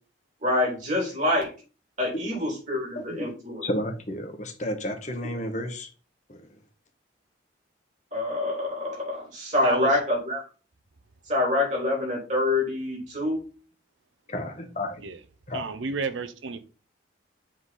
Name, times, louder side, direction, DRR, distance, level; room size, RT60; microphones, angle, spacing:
voice 1, 0.4-1.5 2.0-3.6 8.1-10.4 11.3-13.4, left 2 dB, 40° right, 3.5 m, -26 dB
voice 2, 2.9-3.3 3.6-5.9 6.3-6.5 14.3-15.0 15.5-15.6, left 1 dB, 35° left, 1.2 m, -32 dB
voice 3, 15.5-16.6, right 4 dB, 75° right, 0.8 m, -31 dB
7.6 x 3.9 x 4.1 m
head